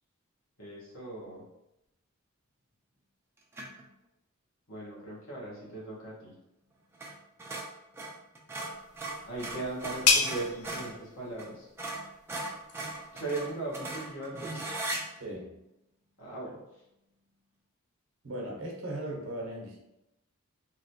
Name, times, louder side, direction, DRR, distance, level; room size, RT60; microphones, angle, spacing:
voice 1, 0.6-1.4 4.7-6.3 9.2-11.7 13.1-14.7 16.2-16.8, right 2 dB, 75° left, -6 dB, 1.3 m, -38 dB
sound 1, 3.5-3.8 6.9-7.1 7.4-10.9 11.4-11.5 11.8-15.0, right 2 dB, 10° right, 0.4 m, -38 dB
sound 2, 8.7-14.1, left 5 dB, 90° left, 0.5 m, -33 dB
voice 2, 15.2-15.5 18.2-19.8, right 1 dB, 65° right, -1 dB, 0.8 m, -37 dB
3.0 x 2.9 x 2.7 m, 0.88 s
head